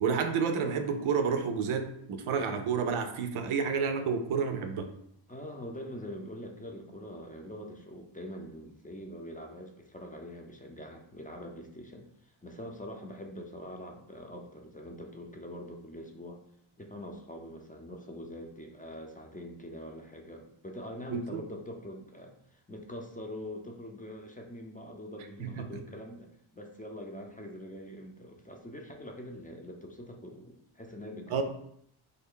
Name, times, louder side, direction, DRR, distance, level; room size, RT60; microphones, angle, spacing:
voice 1, 0.0-4.9 21.1-21.4 25.4-25.8 31.3-31.4, right 6 dB, 85° right, 7 dB, 0.5 m, -30 dB
voice 2, 5.3-16.4 16.8-31.4, left 1 dB, 15° left, 1 dB, 0.6 m, -44 dB
3.3 x 2.2 x 3.7 m, 0.70 s
cardioid pair, 50°, 48 cm